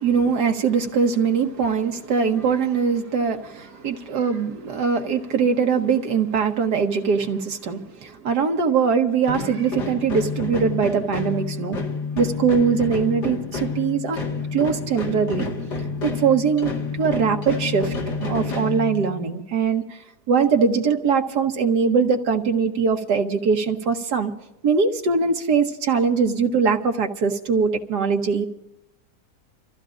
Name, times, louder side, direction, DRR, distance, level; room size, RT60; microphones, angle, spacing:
voice 1, 0.0-11.8 12.2-14.2 14.5-15.5 16.0-16.7 17.0-17.9 18.2-19.8 20.3-24.3 24.6-28.5, right 5 dB, 80° right, 4 dB, 1.7 m, -21 dB
sound 1, 9.2-19.4, left 4 dB, 90° left, 2.5 m, -29 dB
29.5 x 14.5 x 2.5 m, 0.93 s
omnidirectional pair, 1.7 m